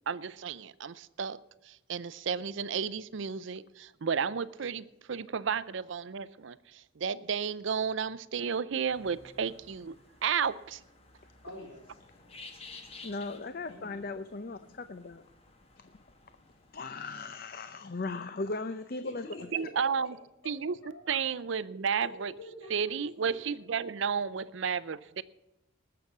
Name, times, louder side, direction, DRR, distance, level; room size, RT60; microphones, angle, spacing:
voice 1, 0.1-10.0 10.2-10.8 19.5-20.2 20.5-20.8 21.1-22.3 22.7-25.2, right 6 dB, 65° right, 0.5 m, -32 dB
sound 1, 8.9-16.9, left 3 dB, 30° left, 1.4 m, -53 dB
voice 2, 11.4-13.1 13.7-14.3 17.3-17.4 19.0-19.9 20.4-20.5 20.8-21.0 22.0-22.1 22.4-23.6, left 1 dB, 85° left, 4.0 m, -49 dB
voice 3, 13.0-15.2 16.7-19.3, left 3 dB, 45° left, 0.6 m, -37 dB
19.5 x 6.9 x 7.2 m
head